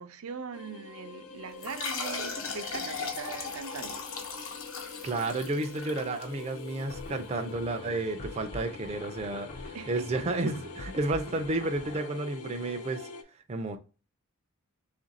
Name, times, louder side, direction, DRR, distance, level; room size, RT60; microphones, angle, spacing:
voice 1, 0.0-4.0 9.7-10.2, right 5 dB, 85° right, 0.5 m, -41 dB
sound 1, 0.5-13.2, left 5 dB, 90° left, 0.6 m, -45 dB
sound 2, 1.6-6.8, left 4 dB, 70° left, 0.9 m, -37 dB
voice 2, 5.0-13.1 13.5-13.8, right 2 dB, 30° right, 0.4 m, -31 dB
sound 3, 6.9-12.1, left 1 dB, 35° left, 0.4 m, -45 dB
3.5 x 2.5 x 3.9 m
head